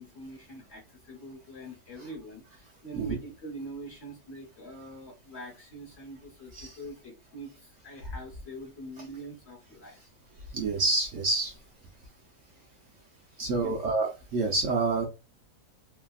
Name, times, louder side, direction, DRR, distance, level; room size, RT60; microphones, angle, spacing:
voice 1, 0.0-10.0 13.6-13.7, right 1 dB, 45° left, -1 dB, 1.2 m, -44 dB
voice 2, 10.5-11.5 13.4-15.0, right 3 dB, 60° right, 0 dB, 0.9 m, -28 dB
3.4 x 2.4 x 2.3 m, 0.28 s
omnidirectional pair, 1.7 m